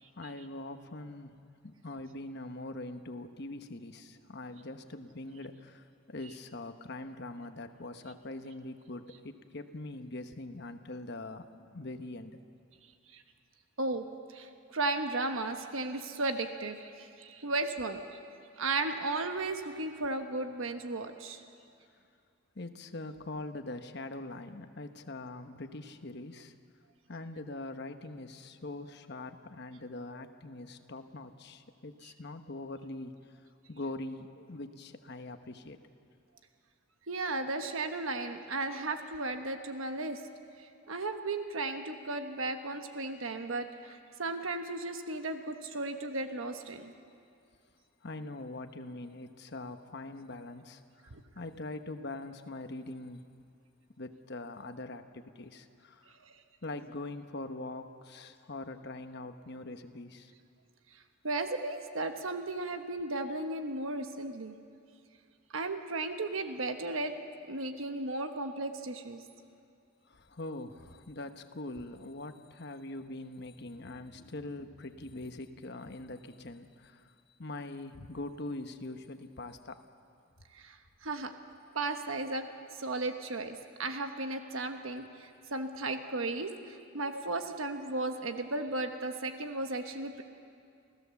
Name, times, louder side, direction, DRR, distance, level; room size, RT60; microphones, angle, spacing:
voice 1, 0.0-1.4 1.6-12.4 22.5-26.5 27.1-33.1 33.7-35.8 48.0-53.2 54.0-56.1 56.6-60.3 70.1-77.1 77.4-79.9, left 2 dB, 55° left, 8 dB, 1.1 m, -43 dB
voice 2, 13.8-18.0 18.6-21.4 37.1-40.2 40.9-46.9 51.1-51.2 56.2-56.3 61.2-64.6 65.5-67.1 67.4-69.2 80.5-81.3 81.7-82.5 82.8-90.2, right 2 dB, 80° right, 6 dB, 1.2 m, -35 dB
28.5 x 15.5 x 7.1 m, 2.4 s
head